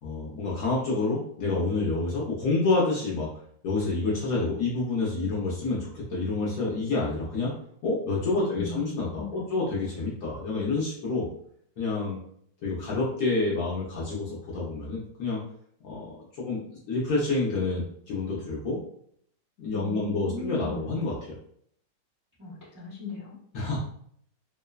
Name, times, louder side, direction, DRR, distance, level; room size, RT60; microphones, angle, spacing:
voice 1, 0.0-3.3 3.6-7.5 7.8-11.3 11.8-12.2 12.6-15.4 15.8-16.6 16.9-18.8 19.6-21.3 23.5-23.8, left 3 dB, 65° left, -5 dB, 1.0 m, -28 dB
voice 2, 8.5-9.5 19.7-21.0 22.4-23.4, left 2 dB, 20° right, -10 dB, 0.5 m, -38 dB
3.0 x 2.1 x 2.3 m, 0.65 s
omnidirectional pair, 1.9 m